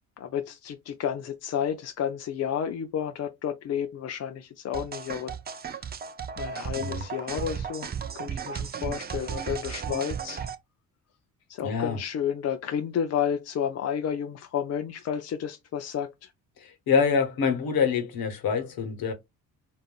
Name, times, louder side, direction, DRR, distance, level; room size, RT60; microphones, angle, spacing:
voice 1, 0.2-5.3 5.7-5.8 6.4-7.9 8.1-10.4 11.5-16.3, left 8 dB, 35° left, 0.5 m, -31 dB
sound 1, 4.7-10.5, right 7 dB, 25° right, 0.4 m, -35 dB
voice 2, 11.6-12.0 16.9-19.1, left 6 dB, 50° left, 1.1 m, -25 dB
3.8 x 2.5 x 2.3 m
hypercardioid pair, 50°, 44 cm